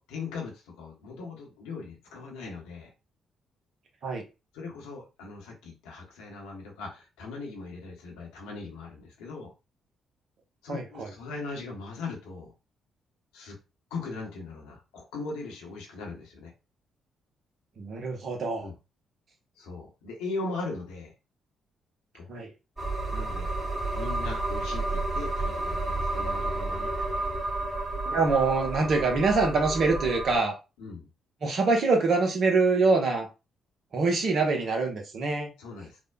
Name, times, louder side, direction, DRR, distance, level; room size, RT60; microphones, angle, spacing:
voice 1, 0.0-2.9 4.5-9.5 10.6-12.5 13.3-13.6 13.9-16.5 18.6-18.7 19.6-21.1 22.1-22.3 23.1-23.5 23.9-26.9 30.8-31.1 35.6-36.0, left 3 dB, 70° left, 0.8 m, -39 dB
voice 2, 10.7-11.1 17.8-18.7 22.3-22.5 28.1-30.6 31.4-33.3 33.9-35.5, right 3 dB, 55° right, 0.8 m, -25 dB
sound 1, 22.8-30.4, right 2 dB, 15° right, 1.2 m, -31 dB
3.4 x 2.1 x 2.3 m
figure-of-eight pair, 40°, 0 cm